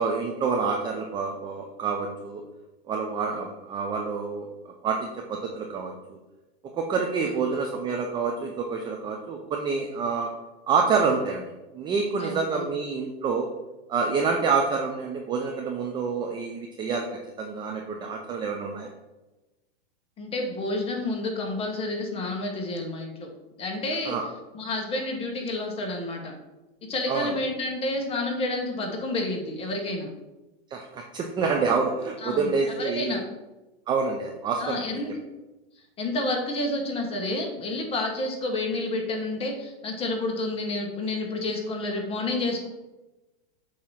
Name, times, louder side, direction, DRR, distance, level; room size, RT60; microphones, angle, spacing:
voice 1, 0.0-2.4 2.9-4.5 4.8-6.2 6.7-10.3 10.7-11.4 11.7-13.5 13.9-17.1 17.4-18.9 24.1-24.2 27.1-27.3 30.7-33.2 33.9-35.0, right 5 dB, 15° right, 1 dB, 0.4 m, -27 dB
voice 2, 12.2-12.7 20.2-23.3 23.6-24.2 24.5-26.3 26.9-30.1 32.2-33.2 34.6-35.2 36.0-42.7, left 2 dB, 20° left, 2 dB, 1.2 m, -29 dB
7.5 x 2.9 x 5.6 m, 1.1 s
hypercardioid pair, 140°, 32 cm